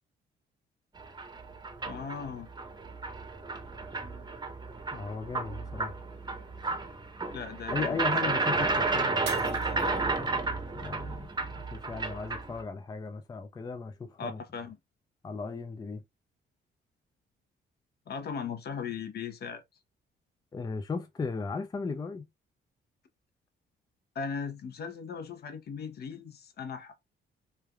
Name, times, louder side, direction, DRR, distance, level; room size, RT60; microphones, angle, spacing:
sound 1, 1.0-12.6, right 3 dB, 20° right, 0.8 m, -32 dB
voice 1, 1.9-2.5 7.3-8.0 14.2-14.8 18.1-19.6 24.1-26.9, left 6 dB, 55° left, 0.7 m, -38 dB
voice 2, 4.9-6.0 7.7-10.4 10.7-14.4 15.2-16.0 20.5-22.3, left 4 dB, 20° left, 0.4 m, -37 dB
Shatter, 9.2-10.5 11.1-11.5 12.1-12.2, right 6 dB, 60° right, 0.8 m, -43 dB
3.3 x 2.3 x 2.2 m
cardioid pair, 90°, 20 cm